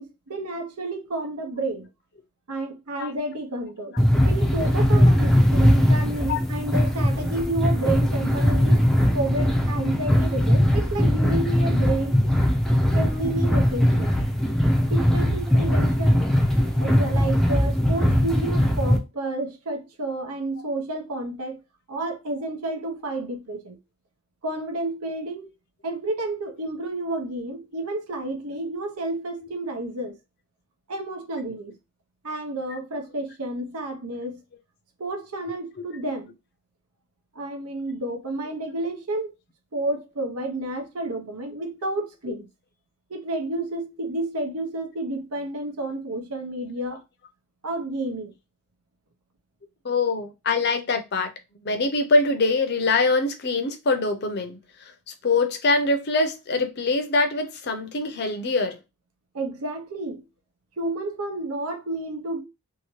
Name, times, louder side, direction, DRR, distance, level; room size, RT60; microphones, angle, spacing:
voice 1, 0.0-1.9 2.5-4.0 4.2-8.9 9.1-12.1 12.9-14.1 14.9-16.3 16.8-21.6 21.9-23.8 24.4-25.5 25.8-30.2 30.9-31.8 32.2-34.4 35.0-36.3 37.3-39.3 39.7-42.5 43.1-47.0 47.6-48.3 59.3-60.2 60.8-62.4, right 2 dB, 85° right, 0.8 m, -30 dB
sound 1, 4.0-19.0, equal, ahead, 0.4 m, -20 dB
voice 2, 49.8-51.3 51.6-54.9 55.2-58.8, left 3 dB, 45° left, 0.6 m, -23 dB
2.8 x 2.7 x 3.0 m
head